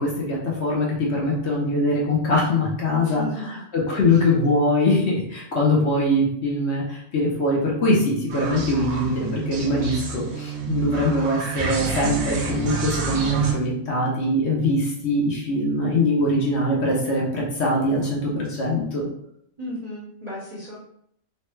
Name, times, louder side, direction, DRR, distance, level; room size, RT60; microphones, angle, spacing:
voice 1, 0.0-19.1, left 1 dB, 60° left, -3 dB, 0.9 m, -22 dB
sound 1, 8.3-13.5, right 5 dB, 70° right, 0.9 m, -28 dB
voice 2, 19.6-20.8, left 1 dB, 40° right, -7 dB, 0.7 m, -34 dB
3.1 x 2.1 x 3.0 m, 0.71 s
omnidirectional pair, 1.4 m